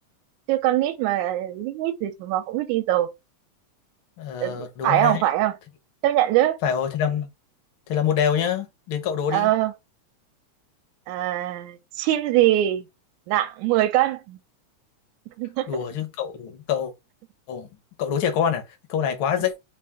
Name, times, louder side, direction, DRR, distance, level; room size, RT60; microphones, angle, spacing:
voice 1, 0.5-3.1 4.4-5.6 6.0-6.6 9.3-9.7 11.1-12.9 13.3-14.4 15.4-15.8, right 14 dB, 80° right, 2.0 m, -23 dB
voice 2, 4.2-5.2 6.6-7.3 7.9-9.5 15.7-16.9 17.5-17.7 18.0-18.6 18.9-19.5, left 8 dB, 65° left, 1.3 m, -25 dB
4.8 x 2.5 x 3.5 m
omnidirectional pair, 3.4 m